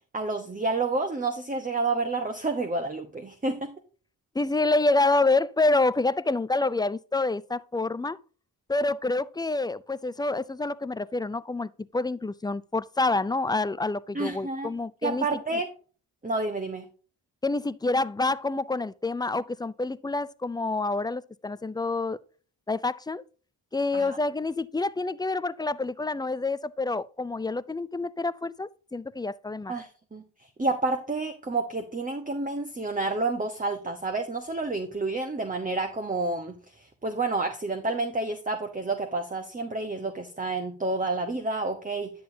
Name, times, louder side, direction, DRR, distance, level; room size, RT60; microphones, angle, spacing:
voice 1, 0.1-3.7 14.1-14.7 15.0-15.7 16.2-16.9 23.9-24.2 29.7-30.2 30.6-42.1, right 3 dB, 20° right, 1.0 m, -29 dB
voice 2, 4.3-8.2 8.7-15.3 17.4-22.2 22.7-23.2 23.7-29.7, left 2 dB, 10° left, 0.3 m, -27 dB
10.0 x 6.9 x 2.7 m
supercardioid pair, 45°, 45 cm